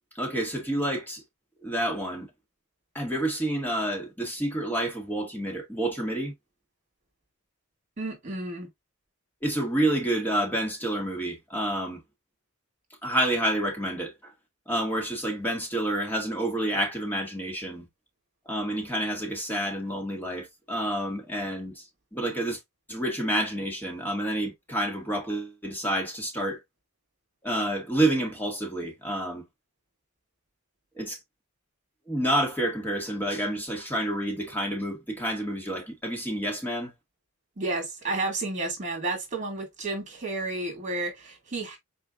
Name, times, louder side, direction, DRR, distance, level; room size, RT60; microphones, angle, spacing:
voice 1, 0.2-1.2 1.6-2.3 2.9-6.3 9.4-12.0 13.0-14.3 14.7-17.9 18.5-21.8 22.1-22.6 22.9-26.6 27.4-29.4 31.0-31.2 32.1-36.9, right 1 dB, 10° left, 1.9 m, -29 dB
voice 2, 8.0-8.7 37.6-41.8, right 2 dB, 35° right, 2.7 m, -31 dB
4.6 x 4.4 x 2.5 m
head